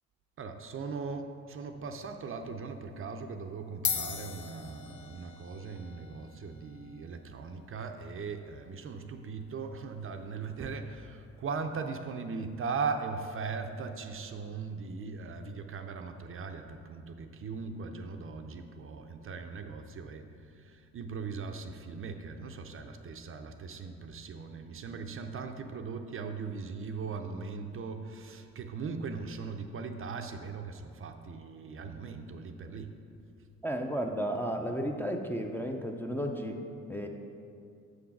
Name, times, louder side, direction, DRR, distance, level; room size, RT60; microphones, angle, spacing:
voice 1, 0.4-33.0, right 4 dB, 45° right, 6 dB, 0.5 m, -39 dB
sound 1, 2.2-2.5 3.3-3.4 3.7-12.4, left 8 dB, 70° left, 0.6 m, -42 dB
voice 2, 33.6-36.6 36.9-37.1, equal, 5° left, 1 dB, 0.5 m, -33 dB
7.3 x 3.9 x 5.8 m, 2.5 s
cardioid pair, 90°, 30 cm